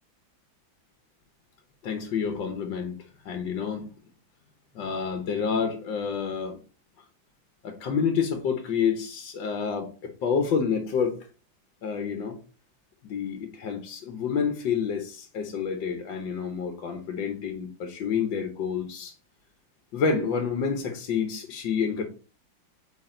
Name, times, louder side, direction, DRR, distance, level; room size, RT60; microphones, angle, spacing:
voice 1, 1.8-3.0 3.3-3.9 4.8-6.6 7.6-11.2 11.8-12.4 13.0-19.1 19.9-22.0, left 6 dB, 70° left, 1.7 m, -28 dB
8.8 x 3.9 x 3.8 m
omnidirectional pair, 2.1 m